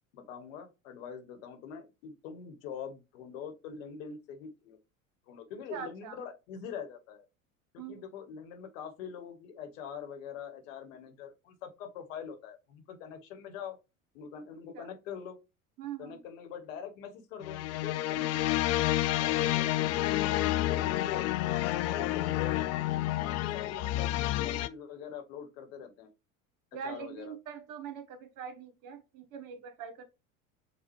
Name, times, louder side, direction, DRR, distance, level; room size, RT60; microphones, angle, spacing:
voice 1, 0.1-4.8 5.3-7.2 7.7-13.8 14.1-15.4 16.0-18.6 19.2-21.3 21.9-26.1 26.8-27.3, left 7 dB, 65° left, 1.2 m, -44 dB
voice 2, 5.7-6.2 7.8-8.0 14.7-14.9 15.8-16.2 18.1-18.3 19.6-19.8 26.7-30.1, right 7 dB, 50° right, 1.2 m, -43 dB
sound 1, 17.4-24.7, left 15 dB, 40° left, 0.4 m, -29 dB
6.9 x 2.3 x 3.0 m
hypercardioid pair, 80°, 42 cm